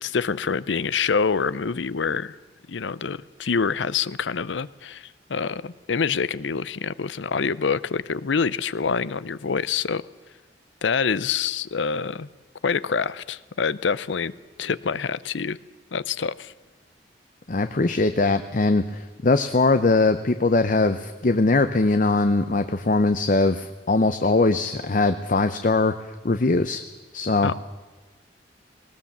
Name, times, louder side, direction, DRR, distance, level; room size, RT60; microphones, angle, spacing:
voice 1, 0.0-2.4 2.7-10.0 10.8-12.3 12.6-14.3 14.6-15.6 15.9-16.5 27.4-27.5, left 5 dB, 90° left, 19 dB, 0.6 m, -26 dB
voice 2, 17.5-25.9 26.2-26.8 27.1-27.5, left 3 dB, 45° left, 10 dB, 0.7 m, -21 dB
19.0 x 19.0 x 7.3 m, 1.3 s
head